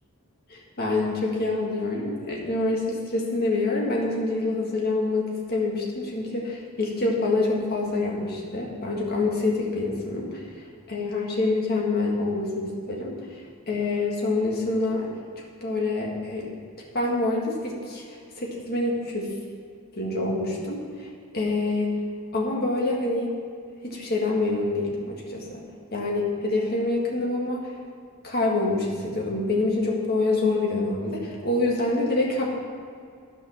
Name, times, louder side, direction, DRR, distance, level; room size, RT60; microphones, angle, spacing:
voice 1, 0.5-10.4 10.9-13.4 13.7-15.1 15.6-16.5 16.9-18.0 18.4-19.3 20.0-21.1 21.3-22.0 22.3-23.3 23.8-25.6 25.9-27.7 28.2-32.4, left 2 dB, 45° left, -2 dB, 1.8 m, -26 dB
12.0 x 5.6 x 5.8 m, 2.2 s
head